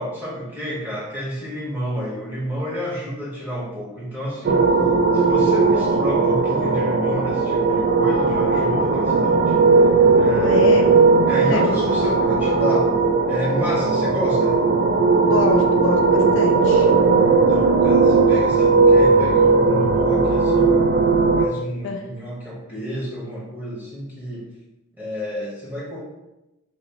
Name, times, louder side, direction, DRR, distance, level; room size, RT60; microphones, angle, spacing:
voice 1, 0.0-4.7 5.1-9.5 10.2-10.9 11.3-12.9 13.3-14.7 17.3-20.7 21.4-24.5 25.0-26.0, equal, 10° right, -7 dB, 1.2 m, -30 dB
sound 1, 4.4-21.4, right 4 dB, 50° right, 0.3 m, -17 dB
voice 2, 10.4-10.9 11.5-11.8 15.2-16.9 21.8-22.1, left 4 dB, 60° left, 3 dB, 0.3 m, -26 dB
2.9 x 2.9 x 3.0 m, 0.96 s
head